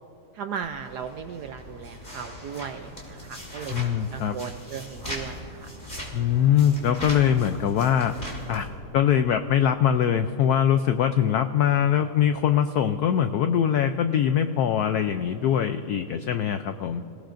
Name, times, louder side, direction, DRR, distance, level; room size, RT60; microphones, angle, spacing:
voice 1, 0.4-3.8 4.1-5.4, right 7 dB, 75° right, 7 dB, 0.9 m, -36 dB
sound 1, 0.6-8.7, equal, 25° left, 3.3 m, -39 dB
voice 2, 3.7-4.4 6.1-8.2 8.5-8.7 8.9-17.0, left 9 dB, 85° left, 9 dB, 0.8 m, -22 dB
28.0 x 17.5 x 2.6 m, 2.9 s
omnidirectional pair, 2.2 m